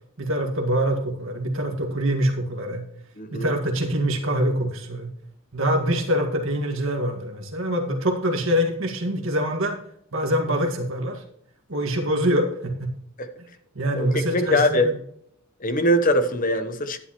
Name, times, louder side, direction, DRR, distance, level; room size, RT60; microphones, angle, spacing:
voice 1, 0.2-2.8 3.3-5.1 5.5-9.8 10.1-11.2 11.7-12.9 13.8-15.0, equal, 60° right, 1.8 m, -24 dB
voice 2, 3.2-3.5 13.2-13.3 14.0-14.9 15.6-17.0, left 1 dB, 40° left, 0.9 m, -22 dB
11.0 x 10.0 x 3.0 m
head